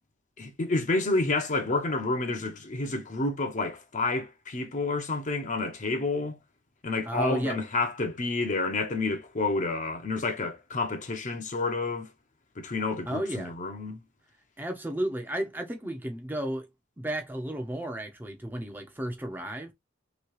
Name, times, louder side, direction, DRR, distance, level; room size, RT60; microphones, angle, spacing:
voice 1, 0.4-6.4 6.8-12.1 12.6-14.0, left 3 dB, 40° left, 0.7 m, -29 dB
voice 2, 7.1-7.6 13.1-13.5 14.6-16.7 17.0-19.7, right 1 dB, 10° right, 0.6 m, -33 dB
2.9 x 2.8 x 3.0 m
head